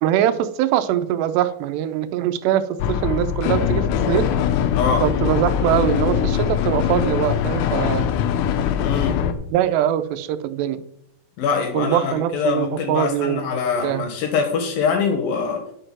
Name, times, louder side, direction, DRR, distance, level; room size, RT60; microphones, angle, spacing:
voice 1, 0.0-4.3 5.0-8.1 9.5-10.8 11.7-13.5 13.8-14.1, right 11 dB, 85° right, 11 dB, 2.8 m, -22 dB
sound 1, 2.8-9.3, left 9 dB, 85° left, 2.9 m, -22 dB
voice 2, 4.7-5.0 8.8-9.2 11.4-15.6, left 5 dB, 70° left, 5 dB, 2.7 m, -23 dB
9.6 x 6.8 x 5.9 m, 0.75 s
omnidirectional pair, 4.8 m